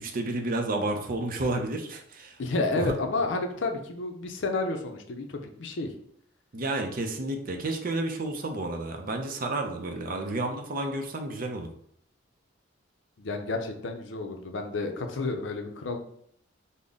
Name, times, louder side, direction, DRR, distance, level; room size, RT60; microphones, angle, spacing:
voice 1, 0.0-2.9 6.5-11.7, right 2 dB, 45° right, 4 dB, 0.5 m, -31 dB
voice 2, 2.4-5.9 13.2-16.0, left 3 dB, 65° left, 4 dB, 0.5 m, -31 dB
3.9 x 2.1 x 3.5 m, 0.65 s
head